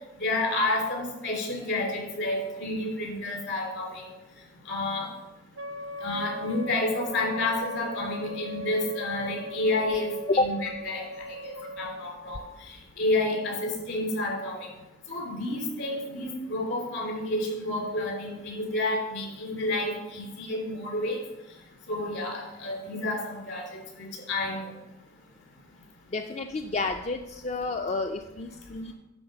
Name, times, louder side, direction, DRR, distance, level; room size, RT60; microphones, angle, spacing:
voice 1, 0.2-4.1 4.7-5.1 6.0-11.0 11.4-12.4 13.0-14.7 15.1-21.2 21.9-24.6, left 2 dB, 70° left, -1 dB, 3.1 m, -30 dB
Wind instrument woodwind instrument, 5.6-12.1, equal, 90° right, 0.8 m, -39 dB
voice 2, 26.1-28.9, left 3 dB, 35° left, 5 dB, 0.4 m, -29 dB
10.5 x 3.9 x 6.8 m, 1.0 s
head